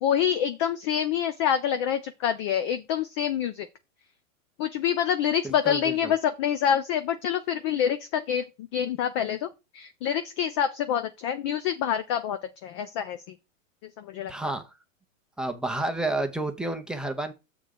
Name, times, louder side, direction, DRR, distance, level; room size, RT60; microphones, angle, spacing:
voice 1, 0.0-3.7 4.6-8.4 8.7-9.5 9.7-13.2 14.0-14.3, left 9 dB, 25° left, 0.3 m, -26 dB
voice 2, 5.4-6.1 14.3-14.7 15.4-17.3, right 2 dB, ahead, 0.7 m, -30 dB
6.9 x 3.8 x 6.5 m
hypercardioid pair, 135°, 40 cm